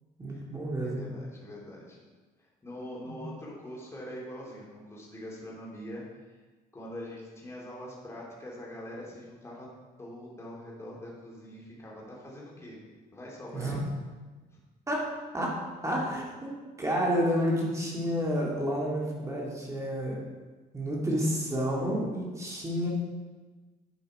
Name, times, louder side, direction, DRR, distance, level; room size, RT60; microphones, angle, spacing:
voice 1, 0.2-1.0 3.1-3.2 13.5-13.8 14.9-20.2 20.7-22.9, equal, 20° right, -3 dB, 2.1 m, -30 dB
voice 2, 0.8-2.0 2.4-6.4 6.7-9.7 10.0-12.8 13.1-13.8 14.5-14.6, equal, 15° left, -5 dB, 2.8 m, -43 dB
10.5 x 5.4 x 4.8 m, 1.3 s
cardioid pair, 110°, 17 cm